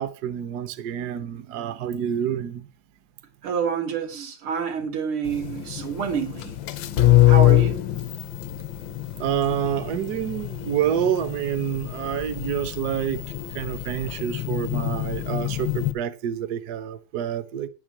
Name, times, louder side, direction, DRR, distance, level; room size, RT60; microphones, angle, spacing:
voice 1, 0.0-2.7 9.2-13.2 13.5-17.7, right 9 dB, 60° right, 1.2 m, -28 dB
voice 2, 3.4-6.5 7.3-7.8, right 7 dB, 85° right, 2.7 m, -28 dB
sound 1, 5.3-15.9, left 14 dB, 70° left, 1.5 m, -24 dB
9.5 x 8.6 x 6.0 m
omnidirectional pair, 2.3 m